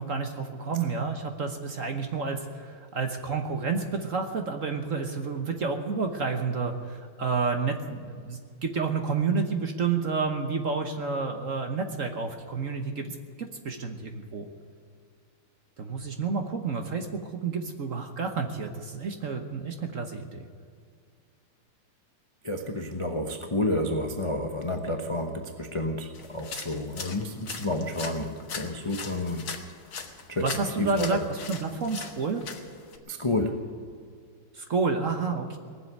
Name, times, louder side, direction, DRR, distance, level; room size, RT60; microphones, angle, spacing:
voice 1, 0.0-14.5 15.8-20.5 30.4-32.4 34.5-35.6, right 4 dB, 45° right, 5 dB, 1.2 m, -30 dB
voice 2, 22.4-28.3 28.6-29.5 30.3-31.2 33.1-33.7, left 1 dB, 30° left, 4 dB, 0.5 m, -30 dB
sound 1, 26.1-33.0, left 5 dB, 50° left, 1.6 m, -40 dB
19.5 x 7.6 x 9.5 m, 2.2 s
omnidirectional pair, 2.3 m